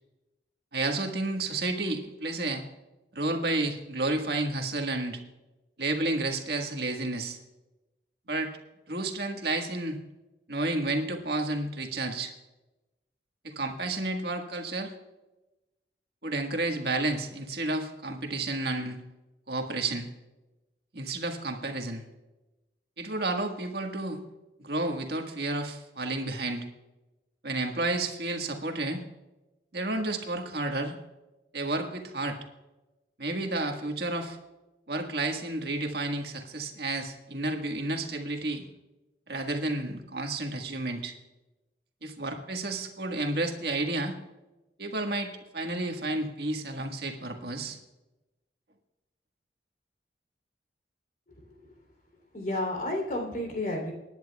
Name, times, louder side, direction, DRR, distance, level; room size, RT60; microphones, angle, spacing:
voice 1, 0.7-2.6 3.2-5.2 5.8-7.4 8.3-8.5 8.9-10.0 10.5-12.3 13.4-14.9 16.2-19.0 19.5-20.1 20.9-22.0 23.0-24.2 24.6-26.7 27.4-29.0 29.7-31.0 31.5-32.4 33.2-34.4 34.9-38.7 39.3-41.1 42.0-44.2 44.8-47.8, right 2 dB, 60° right, 3 dB, 1.6 m, -31 dB
voice 2, 52.3-53.9, left 1 dB, 45° left, 2 dB, 3.3 m, -31 dB
24.5 x 10.5 x 2.4 m, 1.0 s
head